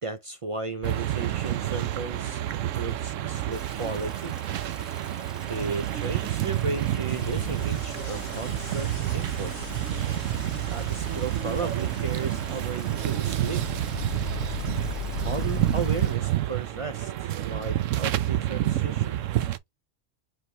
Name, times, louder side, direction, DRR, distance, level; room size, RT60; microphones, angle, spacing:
voice 1, 0.0-4.4 5.4-9.5 10.7-13.7 15.2-19.2, right 4 dB, 60° right, 0.3 m, -35 dB
sound 1, 0.8-19.6, right 13 dB, 85° right, 1.0 m, -29 dB
Stream / Drip / Trickle dribble, 3.5-16.2, equal, ahead, 1.4 m, -47 dB
sound 2, 7.1-16.0, left 8 dB, 50° left, 1.0 m, -38 dB
5.1 x 3.6 x 2.8 m
omnidirectional pair, 1.3 m